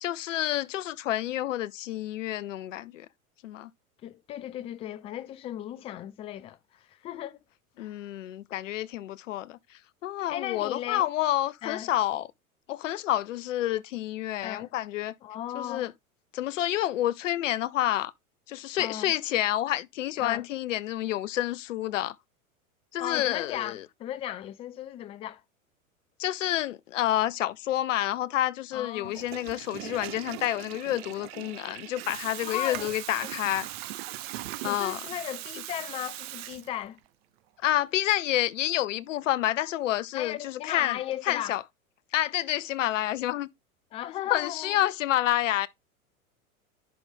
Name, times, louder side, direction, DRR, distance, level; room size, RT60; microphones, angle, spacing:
voice 1, 0.0-3.1 3.4-3.7 7.8-9.6 10.0-12.3 12.7-15.1 15.5-15.9 16.3-18.1 18.5-22.1 22.9-23.8 26.2-33.7 34.6-35.0 37.6-41.0 41.3-41.6 42.1-43.5 44.3-45.7, left 13 dB, 60° left, 0.7 m, -29 dB
voice 2, 4.0-7.4 7.8-8.0 10.3-11.1 11.6-11.9 14.4-14.7 15.2-15.9 18.8-19.1 20.2-20.5 23.0-25.4 28.7-29.1 32.4-33.3 34.6-37.0 40.1-41.6 43.9-44.8, left 12 dB, 15° left, 0.4 m, -36 dB
Water tap faucet / Toilet flush, 29.0-37.1, right 15 dB, 45° right, 0.7 m, -40 dB
10.5 x 4.8 x 3.6 m
figure-of-eight pair, 85°, 43 cm